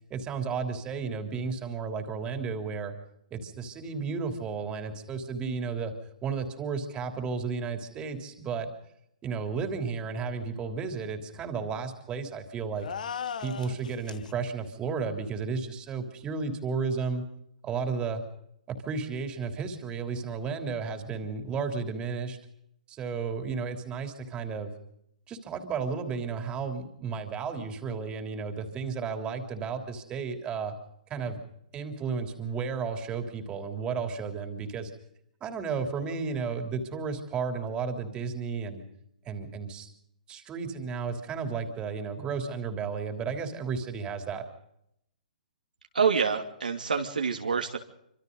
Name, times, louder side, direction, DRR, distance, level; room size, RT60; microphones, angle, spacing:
voice 1, 0.1-3.0 3.3-5.9 6.2-8.7 9.2-12.9 13.4-17.3 17.6-18.2 18.7-22.4 22.9-24.7 25.3-30.7 31.1-31.4 31.7-34.9 35.4-38.8 39.3-39.9 40.3-44.4, right 5 dB, 20° right, 5 dB, 3.4 m, -33 dB
sound 1, 12.8-14.3, left 7 dB, 70° left, 1.6 m, -37 dB
voice 2, 45.9-47.8, right 6 dB, 90° right, 3 dB, 2.8 m, -27 dB
26.5 x 26.0 x 4.0 m, 0.77 s
hypercardioid pair, 135°, 4 cm